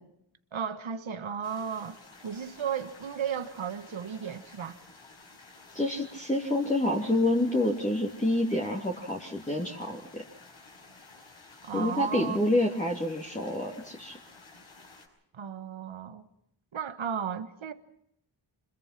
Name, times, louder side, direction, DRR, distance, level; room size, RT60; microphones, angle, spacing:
voice 1, 0.5-4.8 11.6-12.4 15.3-16.3 16.7-17.7, right 7 dB, 80° right, 1.3 m, -35 dB
sound 1, 1.4-15.1, left 3 dB, 80° left, 5.9 m, -53 dB
voice 2, 5.7-10.2 11.7-14.2, left 1 dB, 15° left, 2.9 m, -28 dB
25.5 x 22.0 x 5.9 m
cardioid pair, 60°, 47 cm